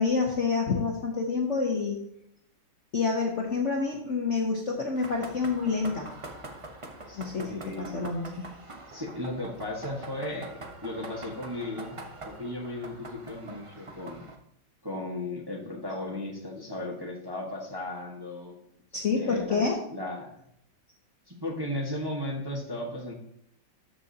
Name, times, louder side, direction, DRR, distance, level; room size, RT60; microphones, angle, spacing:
voice 1, 0.0-2.0 2.9-6.1 7.2-8.5 18.9-19.8, left 4 dB, 50° left, 0 dB, 1.0 m, -28 dB
sound 1, 4.9-14.3, right 2 dB, 45° right, 0.4 m, -44 dB
voice 2, 7.1-8.2 8.9-12.0 12.2-14.2 14.8-18.6 19.1-19.6 19.9-20.5 21.3-23.1, left 1 dB, 15° right, -2 dB, 1.2 m, -36 dB
13.0 x 6.2 x 2.8 m, 0.72 s
omnidirectional pair, 2.1 m